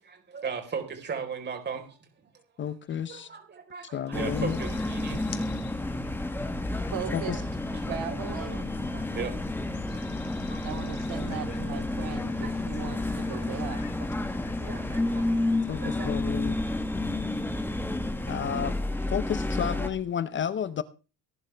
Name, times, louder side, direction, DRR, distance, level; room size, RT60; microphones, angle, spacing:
voice 1, 0.0-2.0 3.1-5.3 6.4-6.8 8.5-8.6 8.9-9.3 9.9-10.6 11.7-11.8 12.2-12.5 14.6-16.4 17.6-17.8 18.3-18.7, right 6 dB, 30° right, 4.1 m, -38 dB
voice 2, 2.6-3.3 3.9-4.6 7.1-7.4 15.7-16.6 18.3-18.8 19.1-20.8, left 8 dB, 30° left, 0.6 m, -31 dB
sound 1, 4.1-19.9, left 2 dB, 5° left, 1.1 m, -30 dB
sound 2, 4.2-15.8, left 8 dB, 80° left, 2.0 m, -49 dB
voice 3, 6.9-7.4 7.9-8.7 10.6-13.8, right 10 dB, 85° right, 3.6 m, -38 dB
19.0 x 11.5 x 3.3 m
cardioid pair, 160°, 36 cm